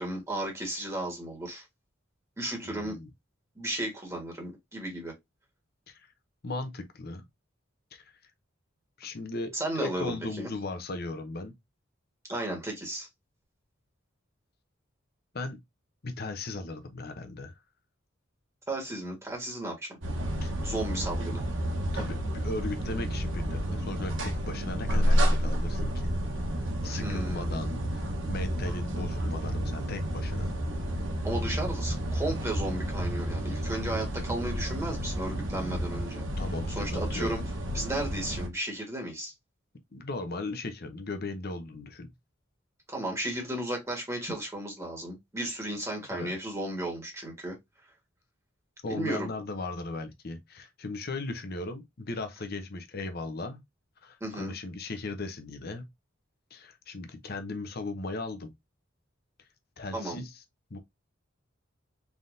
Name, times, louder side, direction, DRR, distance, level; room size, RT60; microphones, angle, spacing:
voice 1, 0.0-1.6 2.4-3.0 3.5-5.1 9.5-10.5 12.3-13.1 18.7-20.0 20.6-21.4 26.9-27.6 31.2-36.2 36.8-37.4 37.7-39.3 42.9-47.6 48.9-49.3 54.2-54.5 59.9-60.2, right 1 dB, 15° right, 1.5 m, -34 dB
voice 2, 2.6-3.1 5.9-6.1 6.4-7.2 7.9-8.1 9.0-11.5 15.3-15.6 16.0-17.6 20.4-20.5 21.8-26.1 26.5-30.5 36.4-37.3 39.9-42.1 46.1-46.3 48.8-53.6 54.0-55.9 56.5-58.5 59.8-60.3 60.7-60.8, left 2 dB, 50° left, 0.9 m, -37 dB
sound 1, 20.0-38.5, equal, 75° right, 1.2 m, -30 dB
3.9 x 3.6 x 2.6 m
head